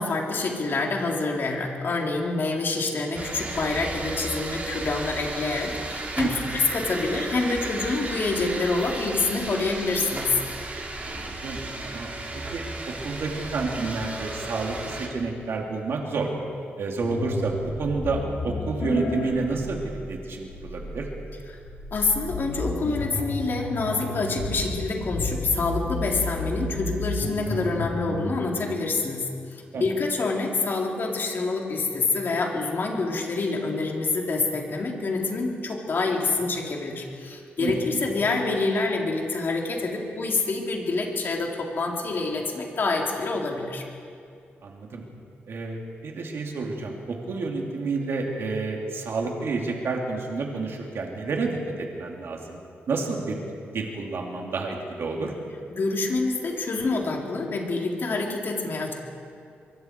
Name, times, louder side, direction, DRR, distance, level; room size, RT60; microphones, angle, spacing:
voice 1, 0.0-10.4 21.9-43.8 55.7-58.9, left 3 dB, 55° left, -1 dB, 3.7 m, -27 dB
sound 1, 3.1-15.1, right 2 dB, 35° right, 3.4 m, -34 dB
voice 2, 11.1-12.6 13.0-16.3 16.8-21.1 29.7-29.9 37.6-38.0 44.6-45.0 45.5-52.6 52.9-53.4 53.7-55.3, right 3 dB, 65° right, 0 dB, 3.0 m, -30 dB
sound 2, 17.0-28.3, left 2 dB, 75° left, 4.5 m, -32 dB
24.0 x 24.0 x 4.7 m, 2.3 s
cardioid pair, 105°, 4 cm